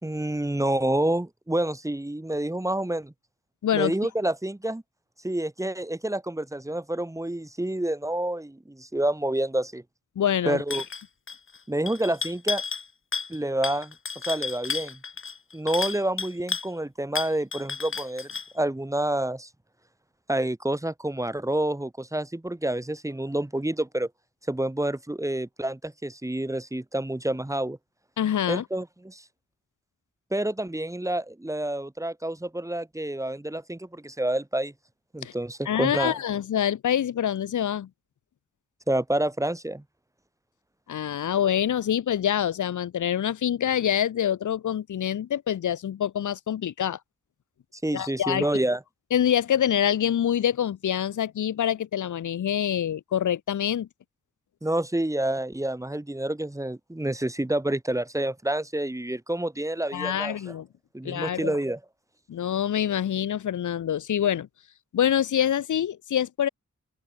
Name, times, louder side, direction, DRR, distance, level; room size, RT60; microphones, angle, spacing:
voice 1, 0.0-3.1 3.7-4.8 5.2-9.8 10.4-10.8 11.7-12.6 13.3-13.9 14.3-15.0 15.5-18.3 18.5-19.5 20.3-24.1 24.5-27.8 28.5-29.2 30.3-34.7 35.1-36.1 38.9-39.8 47.7-48.8 54.6-60.5 60.9-61.8, right 1 dB, 10° right, 1.4 m, -28 dB
voice 2, 3.6-3.9 10.2-10.6 28.2-28.6 35.2-35.3 35.7-37.9 40.9-47.0 47.9-48.5 49.1-53.9 59.9-60.7 61.0-61.6 62.3-64.5 64.9-66.5, left 10 dB, 90° left, 0.7 m, -26 dB
sound 1, 10.7-11.0 11.3-11.6 11.9-12.9 13.1-13.4 13.6-16.7 17.2-18.5, left 5 dB, 45° left, 1.3 m, -32 dB
open air
wide cardioid pair, 130°, 30 cm